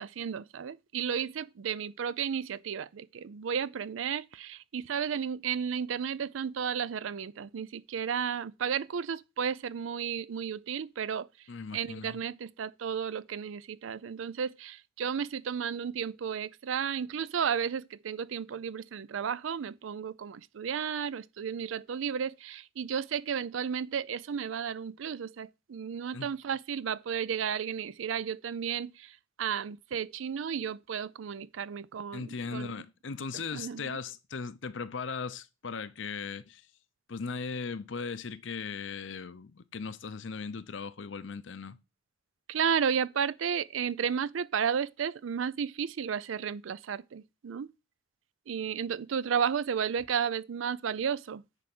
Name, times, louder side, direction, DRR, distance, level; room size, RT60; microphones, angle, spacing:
voice 1, 0.0-11.3 11.7-32.7 33.3-34.0 42.5-47.7 48.5-51.4, right 7 dB, 85° right, 0.4 m, -33 dB
voice 2, 11.5-12.2 26.1-26.3 32.1-36.6 37.1-41.8, left 5 dB, 70° left, 0.6 m, -38 dB
9.8 x 3.5 x 6.0 m
head